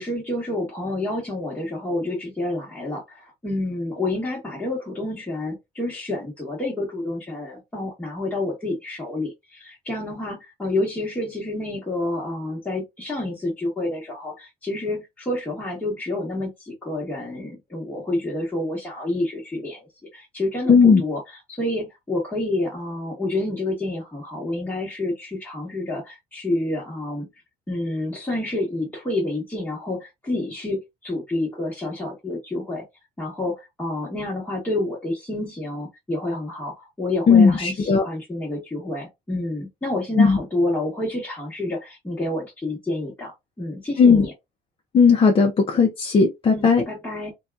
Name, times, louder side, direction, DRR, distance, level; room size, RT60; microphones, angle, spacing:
voice 1, 0.0-27.3 27.7-32.8 33.2-44.3 46.5-47.3, left 2 dB, 10° left, 1.1 m, -29 dB
voice 2, 20.7-21.0 37.3-38.0 40.2-40.4 44.0-44.2 44.9-46.8, left 5 dB, 30° left, 0.6 m, -16 dB
2.7 x 2.2 x 2.3 m
cardioid pair, 110°, 17 cm